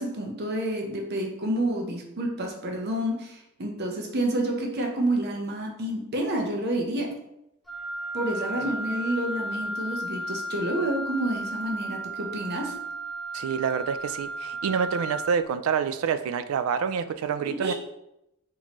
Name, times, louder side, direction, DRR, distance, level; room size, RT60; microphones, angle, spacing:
voice 1, 0.0-7.1 8.1-12.7 17.4-17.7, right 1 dB, 50° right, 2 dB, 0.7 m, -29 dB
Wind instrument woodwind instrument, 7.7-15.4, right 1 dB, ahead, 0.4 m, -34 dB
voice 2, 13.3-17.7, right 7 dB, 75° right, 12 dB, 0.3 m, -27 dB
4.2 x 2.7 x 3.0 m, 0.84 s
head